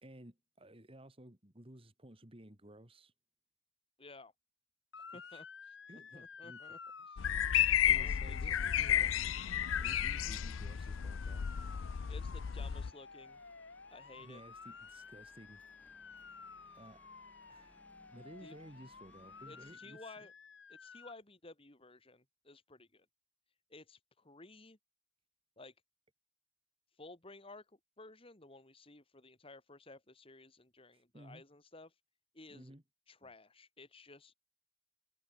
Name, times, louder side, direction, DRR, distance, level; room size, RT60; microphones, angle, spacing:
voice 1, 0.0-3.1 5.1-5.4 5.9-6.6 6.9-7.1 7.8-9.1 9.8-11.4 14.2-15.6 16.1-16.2 16.7-17.0 17.5-17.8 18.1-20.3 30.9-31.4 32.5-32.8 33.2-33.3, right 1 dB, 30° right, 2.6 m, -55 dB
voice 2, 4.0-4.3 5.0-6.8 7.1-7.2 7.9-9.1 12.1-13.4 13.9-14.4 18.4-18.6 19.4-20.3 20.7-23.1 23.7-24.8 25.6-25.7 26.9-27.7 28.0-32.0 32.3-32.7 33.1-34.3, left 2 dB, 30° left, 2.2 m, -55 dB
Motor vehicle (road) / Siren, 4.9-21.1, left 5 dB, 60° left, 3.1 m, -53 dB
sound 1, 7.2-12.9, left 10 dB, 80° left, 0.5 m, -32 dB
sound 2, 8.3-19.7, left 1 dB, 10° left, 2.0 m, -66 dB
head